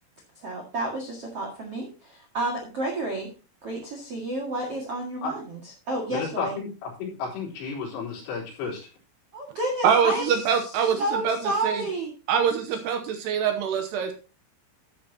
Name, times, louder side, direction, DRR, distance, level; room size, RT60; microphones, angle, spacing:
voice 1, 0.3-3.3 3.6-6.5 9.3-12.1, right 1 dB, 50° right, 0 dB, 1.8 m, -31 dB
voice 2, 6.1-8.9, left 5 dB, 85° left, -3 dB, 6.2 m, -32 dB
voice 3, 9.8-11.4 11.6-11.8 12.3-14.1, right 7 dB, 85° right, 6 dB, 2.4 m, -24 dB
13.0 x 8.8 x 2.8 m, 0.33 s
omnidirectional pair, 5.9 m